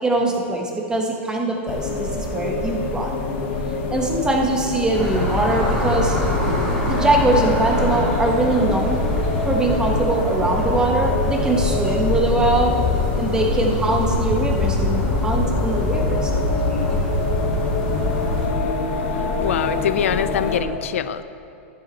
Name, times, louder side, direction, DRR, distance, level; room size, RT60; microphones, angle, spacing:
voice 1, 0.0-3.1 3.9-6.2 6.8-9.0 9.5-12.7 13.2-17.0, right 2 dB, 10° right, 0 dB, 1.3 m, -22 dB
sound 1, 1.7-20.6, left 3 dB, 60° left, 1.3 m, -26 dB
sound 2, 4.9-18.5, left 1 dB, 5° left, 2.4 m, -24 dB
voice 2, 19.4-21.2, left 9 dB, 90° left, 13 dB, 0.4 m, -24 dB
12.5 x 7.7 x 4.1 m, 2.7 s
supercardioid pair, 130°, 7 cm